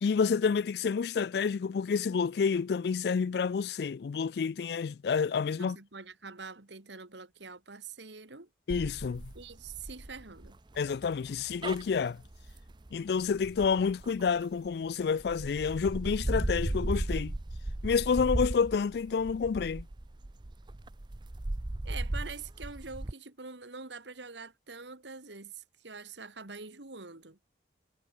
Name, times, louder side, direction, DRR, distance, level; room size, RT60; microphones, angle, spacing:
voice 1, 0.0-5.8 8.7-9.3 10.8-12.2 12.9-17.3 17.8-19.9, left 5 dB, 65° left, 0.3 m, -29 dB
voice 2, 5.6-8.5 9.3-10.6 21.8-27.4, right 4 dB, 85° right, 2.5 m, -45 dB
sound 1, 8.7-14.7 15.2-23.1, right 1 dB, 25° right, 0.6 m, -36 dB
head